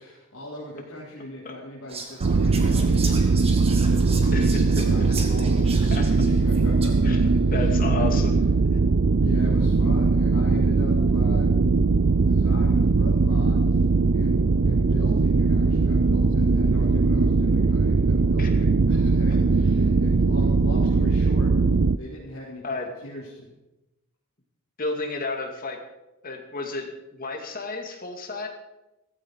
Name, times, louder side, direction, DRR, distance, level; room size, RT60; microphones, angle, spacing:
voice 1, 0.0-8.1 9.2-11.5 12.2-13.8 14.1-21.5 21.9-23.5, left 1 dB, 70° left, -7 dB, 4.0 m, -40 dB
Whispering, 1.9-7.2, right 4 dB, 30° right, 2.1 m, -38 dB
sound 1, 2.2-22.0, right 3 dB, 55° right, 0.5 m, -20 dB
voice 2, 4.3-4.9 5.3-5.4 5.9-6.1 7.0-7.2 7.5-8.3 18.4-18.5 22.6-22.9 24.8-25.8 26.2-28.5, left 3 dB, 40° left, 3 dB, 2.5 m, -32 dB
16.0 x 15.0 x 4.8 m, 0.96 s
head